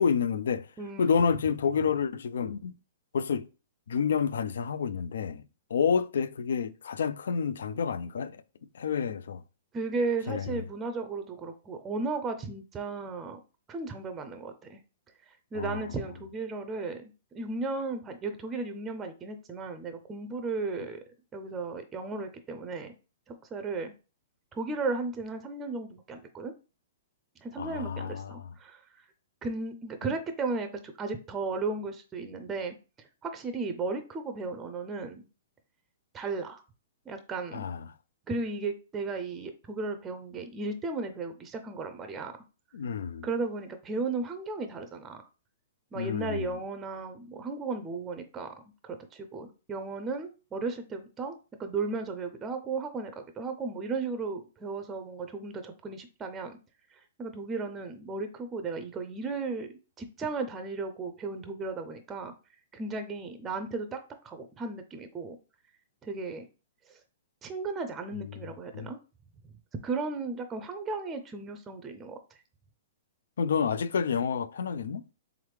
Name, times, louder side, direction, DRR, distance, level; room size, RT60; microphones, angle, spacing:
voice 1, 0.0-0.7 1.0-2.7 3.1-3.5 3.9-5.4 5.7-8.4 8.7-9.4 10.3-10.6 15.5-15.9 27.6-28.4 37.5-37.9 42.7-43.3 45.9-46.5 68.7-68.9 73.4-75.0, left 6 dB, 80° left, 0.3 m, -29 dB
voice 2, 0.8-1.1 9.7-13.4 13.7-14.8 15.3-21.0 21.3-23.0 23.3-23.9 24.5-26.5 27.4-28.8 29.4-32.8 33.2-35.2 36.1-36.6 37.1-37.7 38.3-42.3 43.2-45.2 45.9-48.5 48.8-56.6 56.9-59.7 60.0-62.3 62.7-65.4 66.0-66.5 66.9-67.0 67.4-69.0 69.8-72.2, right 3 dB, 20° right, 0.5 m, -35 dB
3.6 x 3.3 x 3.2 m
hypercardioid pair, 140°, 0 cm